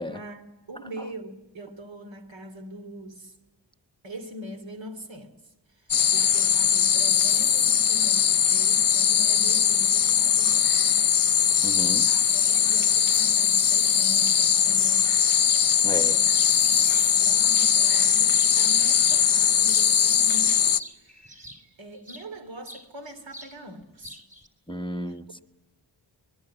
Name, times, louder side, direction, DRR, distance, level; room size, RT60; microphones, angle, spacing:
voice 1, 0.0-3.3 4.0-5.3 5.8-11.1 12.1-15.3 16.0-21.4 21.8-24.2, right 1 dB, 90° right, 3.1 m, -42 dB
sound 1, 5.9-20.8, left 8 dB, 50° left, 0.7 m, -21 dB
voice 2, 11.6-12.2 15.8-16.2 24.7-25.4, left 1 dB, 10° left, 0.9 m, -33 dB
sound 2, 15.4-15.7 16.1-17.7 18.2-18.8 19.0-22.3 22.6-23.6 23.8-24.5, equal, 20° right, 3.3 m, -45 dB
25.0 x 21.5 x 7.8 m
wide cardioid pair, 95°, 44 cm